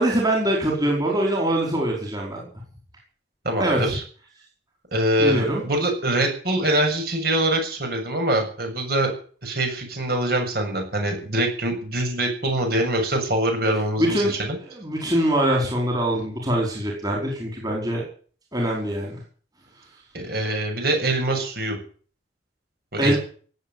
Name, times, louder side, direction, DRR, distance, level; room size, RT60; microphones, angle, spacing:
voice 1, 0.0-2.5 3.6-3.9 5.2-5.6 14.0-14.3 14.6-18.0 18.5-19.2 23.0-23.2, right 1 dB, 20° right, -1 dB, 4.8 m, -23 dB
voice 2, 3.4-4.0 4.9-9.1 9.4-14.6 20.1-21.8 22.9-23.2, right 1 dB, 55° right, 3 dB, 7.0 m, -24 dB
17.5 x 8.4 x 9.3 m, 0.43 s
head